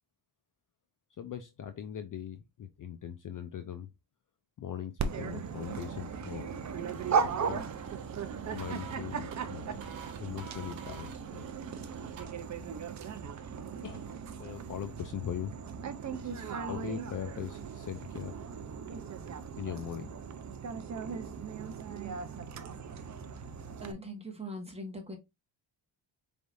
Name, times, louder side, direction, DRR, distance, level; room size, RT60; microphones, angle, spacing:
voice 1, 1.2-3.9 4.6-6.6 7.1-7.6 8.5-9.8 10.2-11.5 13.8-14.1 14.4-15.5 15.8-15.9 16.2-18.4 19.6-20.1, left 9 dB, 45° left, 0.4 m, -40 dB
Dog, 5.0-23.9, right 6 dB, 40° right, 0.5 m, -37 dB
sound 1, 6.8-12.2, right 6 dB, 70° right, 1.0 m, -51 dB
voice 2, 23.8-25.2, equal, 15° right, 1.2 m, -41 dB
4.5 x 3.4 x 2.5 m
cardioid pair, 130°, 47 cm